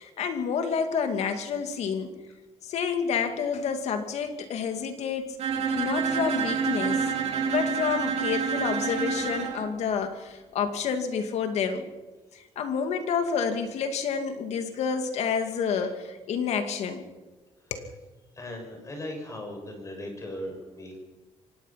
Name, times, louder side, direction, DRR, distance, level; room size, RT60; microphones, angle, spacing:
voice 1, 0.0-2.1 2.6-5.4 5.7-7.1 7.5-11.9 12.3-17.0 17.7-17.9, left 6 dB, 75° left, 7 dB, 2.5 m, -29 dB
Bowed string instrument, 5.4-9.6, right 6 dB, 70° right, 4.1 m, -28 dB
voice 2, 18.3-21.0, left 1 dB, 30° left, 3 dB, 6.6 m, -38 dB
24.0 x 19.0 x 5.9 m, 1.2 s
cardioid pair, 135°, 11 cm